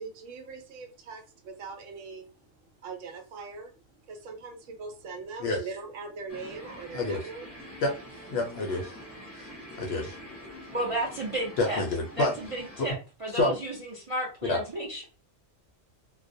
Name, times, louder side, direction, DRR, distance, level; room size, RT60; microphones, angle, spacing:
voice 1, 0.0-2.2 2.6-3.7 4.1-7.8, right 4 dB, 75° right, 3 dB, 0.9 m, -41 dB
sound 1, 6.3-12.9, equal, 15° left, 0.8 m, -45 dB
voice 2, 8.3-9.0 9.3-9.5 9.8-10.2 11.6-12.3 13.3-13.5 14.4-14.6, left 2 dB, 65° left, 1 dB, 0.7 m, -28 dB
voice 3, 10.7-11.8 12.2-12.9 13.2-15.0, right 1 dB, 45° right, -3 dB, 0.4 m, -32 dB
2.3 x 2.0 x 2.6 m, 0.33 s
omnidirectional pair, 1.4 m